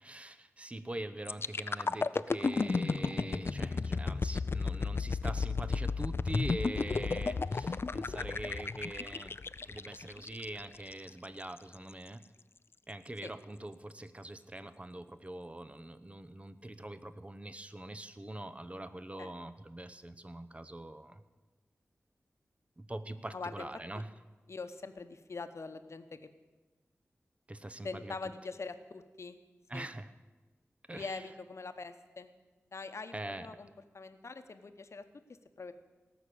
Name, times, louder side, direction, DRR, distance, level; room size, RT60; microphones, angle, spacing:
voice 1, 0.0-9.4 9.6-12.2 12.9-21.2 22.8-24.1 27.5-28.1 29.7-30.1 30.9-31.2 33.1-33.6, right 1 dB, 25° right, 12 dB, 0.9 m, -43 dB
sound 1, 1.3-11.1 11.6-11.8, left 4 dB, 50° left, 0.4 m, -33 dB
voice 2, 23.3-23.7 24.5-26.3 27.8-29.4 29.7-29.9 30.9-32.3 32.7-33.7 33.9-35.0 35.6-35.7, left 4 dB, 65° left, 9 dB, 0.9 m, -43 dB
18.5 x 6.1 x 8.5 m, 1.2 s
wide cardioid pair, 60°, 5 cm